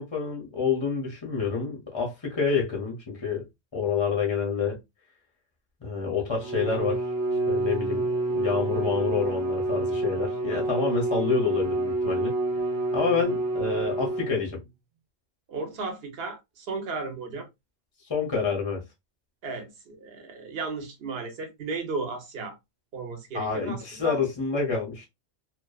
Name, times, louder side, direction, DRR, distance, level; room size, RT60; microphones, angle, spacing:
voice 1, 0.0-3.5 3.7-4.8 5.8-7.0 7.5-12.3 12.9-14.6 18.1-18.8 23.3-25.1, left 5 dB, 35° left, 0.5 m, -28 dB
Bowed string instrument, 6.3-14.6, right 2 dB, 40° right, 0.4 m, -28 dB
voice 2, 15.5-17.5 19.4-22.6 22.9-24.2, right 3 dB, 60° right, 1.0 m, -35 dB
2.5 x 2.3 x 2.3 m
omnidirectional pair, 1.3 m